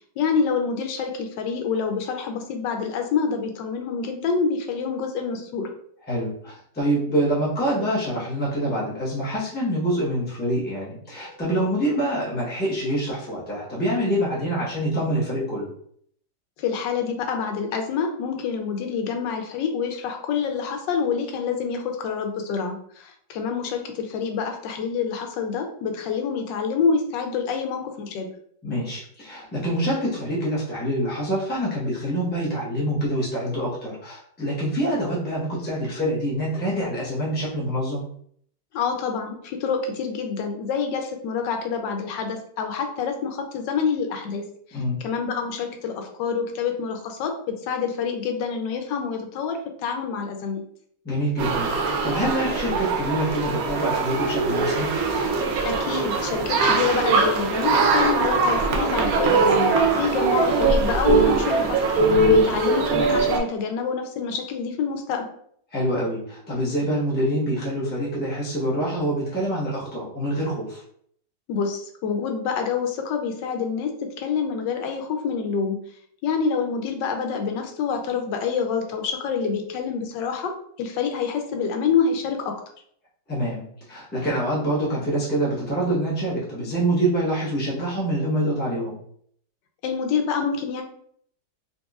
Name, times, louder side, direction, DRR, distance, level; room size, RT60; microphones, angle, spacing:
voice 1, 0.2-5.7 16.6-28.3 38.7-44.4 44.7-50.6 55.6-61.8 62.2-65.3 71.5-75.8 76.2-82.5 89.8-90.8, left 6 dB, 90° left, 4 dB, 1.3 m, -27 dB
voice 2, 6.1-15.7 28.6-38.0 44.7-45.0 51.0-54.9 65.7-70.8 83.3-89.0, right 1 dB, 10° left, -6 dB, 0.6 m, -26 dB
sound 1, 51.4-63.4, right 3 dB, 70° right, 0.9 m, -21 dB
4.0 x 2.6 x 2.4 m, 0.63 s
omnidirectional pair, 1.9 m